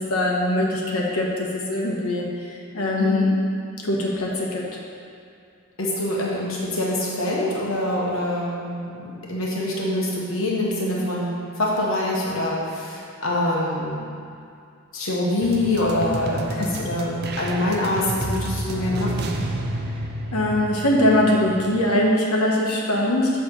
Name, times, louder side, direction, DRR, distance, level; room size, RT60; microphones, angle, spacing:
voice 1, 0.0-2.3 2.7-3.4 3.8-4.6 16.6-16.7 20.3-23.3, left 1 dB, 85° left, -2 dB, 1.2 m, -21 dB
voice 2, 3.0-3.3 5.8-14.0 14.9-19.4, left 1 dB, 65° left, -5 dB, 1.3 m, -25 dB
sound 1, 15.4-21.9, right 2 dB, 45° right, 0.5 m, -31 dB
7.5 x 3.4 x 6.4 m, 2.5 s
head